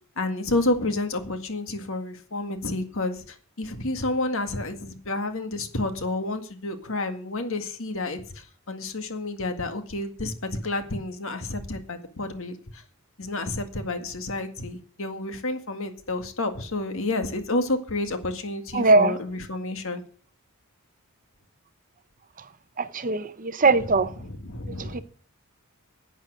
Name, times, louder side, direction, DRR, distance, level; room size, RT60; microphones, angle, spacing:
voice 1, 0.2-12.8 13.2-20.0 23.7-25.0, left 2 dB, 60° left, 2.0 m, -30 dB
voice 2, 18.7-19.1 22.8-24.1 24.9-25.0, right 3 dB, 35° right, 0.8 m, -20 dB
11.0 x 9.0 x 6.5 m
head